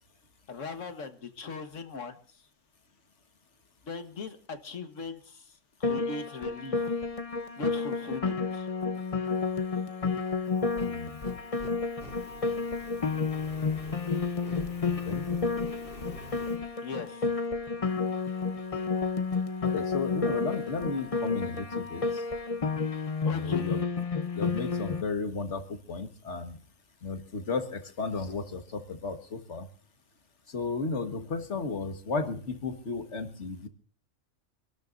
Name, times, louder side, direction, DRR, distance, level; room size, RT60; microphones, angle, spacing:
voice 1, 0.5-2.1 3.9-5.4 5.8-6.9 7.6-8.7 16.8-17.2 23.2-23.7, left 4 dB, 90° left, 8 dB, 1.8 m, -39 dB
Piano, 5.8-25.0, left 4 dB, 30° left, 0.9 m, -31 dB
Fire, 10.5-16.6, equal, 50° left, 3.3 m, -47 dB
voice 2, 10.8-11.2 15.1-15.3 19.6-22.3 23.3-23.8 24.4-26.6 27.0-29.7 30.5-33.7, left 4 dB, 70° left, 6 dB, 1.9 m, -34 dB
27.0 x 12.5 x 2.6 m, 0.43 s
omnidirectional pair, 1.3 m